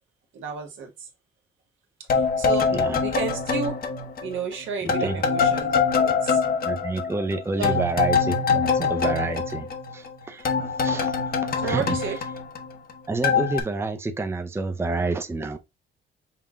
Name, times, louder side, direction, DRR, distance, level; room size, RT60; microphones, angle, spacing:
voice 1, 0.3-1.1 2.1-2.7 3.0-3.7 4.2-6.4 7.6-7.8 8.8-8.9 11.6-12.2, right 5 dB, 80° right, 1.4 m, -31 dB
sound 1, 2.1-4.5 4.9-10.1 10.5-12.9 13.2-13.6, left 5 dB, 50° left, 0.9 m, -24 dB
voice 2, 6.6-9.7 9.9-12.0 13.1-15.6, right 3 dB, 10° right, 0.5 m, -29 dB
5.7 x 2.2 x 3.6 m
cardioid pair, 90°, 20 cm